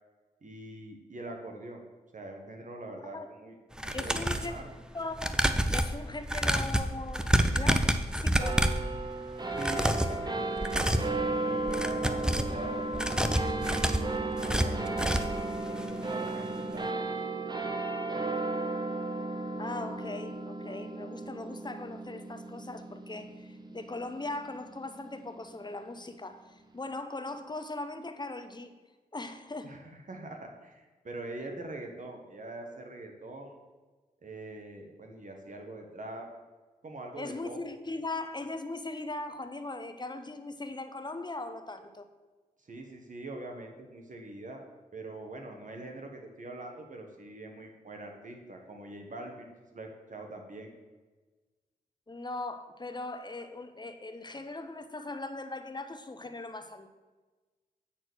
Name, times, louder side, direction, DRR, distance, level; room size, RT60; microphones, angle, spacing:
voice 1, 0.4-1.8 2.1-3.5 3.8-4.7 9.5-10.4 10.7-11.0 11.4-13.6 14.4-15.2 15.7-16.9 29.6-33.5 34.2-36.3 36.8-37.6 42.6-44.6 44.9-50.7, right 2 dB, 55° right, 3 dB, 1.5 m, -43 dB
sound 1, 3.7-4.5 5.1-8.9 9.5-10.2 10.6-11.1 11.6-12.5 12.9-15.4 15.8-15.9 16.2-16.3, right 1 dB, 5° right, 0.7 m, -28 dB
voice 2, 3.9-4.6 4.9-5.3 5.7-7.8 8.1-8.6 19.6-28.7 29.1-29.8 37.2-42.1 52.1-56.9, left 2 dB, 25° left, 8 dB, 0.9 m, -39 dB
sound 2, 8.4-25.1, right 2 dB, 25° right, 1.1 m, -34 dB
8.9 x 4.3 x 6.3 m, 1.3 s
cardioid pair, 45°, 16 cm